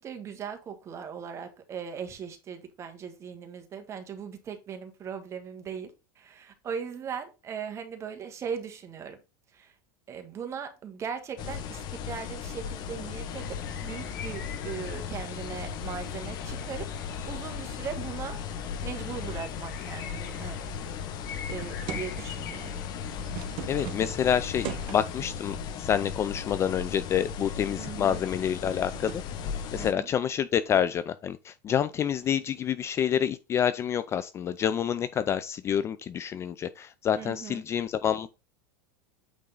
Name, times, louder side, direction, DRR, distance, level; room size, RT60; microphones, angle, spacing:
voice 1, 0.0-5.9 6.1-9.2 9.5-9.7 10.1-16.9 17.2-18.4 18.8-20.7 21.5-22.8 27.8-28.2 29.7-30.1 37.1-37.6, right 7 dB, 25° right, 1.4 m, -39 dB
sound 1, 11.4-29.9, left 7 dB, 40° left, 1.0 m, -37 dB
sound 2, 13.3-25.0, left 6 dB, 90° left, 2.2 m, -44 dB
sound 3, 21.6-22.5 23.0-25.3 26.3-26.8 27.1-27.2 27.9-29.3 32.2-32.4, right 10 dB, 50° right, 1.3 m, -41 dB
voice 2, 23.7-29.2 29.7-38.3, left 9 dB, 25° left, 0.4 m, -28 dB
8.6 x 3.6 x 3.9 m
supercardioid pair, 135°, 11 cm